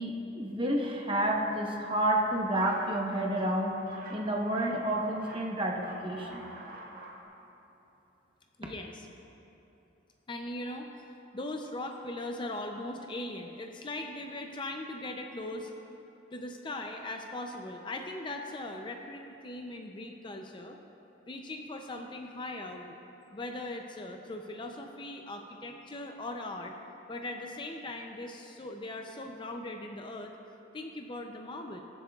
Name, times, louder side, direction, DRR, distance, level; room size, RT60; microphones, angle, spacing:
voice 1, 0.0-3.8 4.1-6.4, right 1 dB, 25° right, 0 dB, 1.0 m, -30 dB
sound 1, 2.2-5.5 5.7-7.2, right 1 dB, 50° right, 1.7 m, -47 dB
voice 2, 8.6-9.1 10.3-15.7 16.3-20.8 21.3-23.0 23.3-26.7 27.1-30.3 30.7-31.8, left 2 dB, 25° left, 3 dB, 0.5 m, -39 dB
22.0 x 7.5 x 2.4 m, 3.0 s
head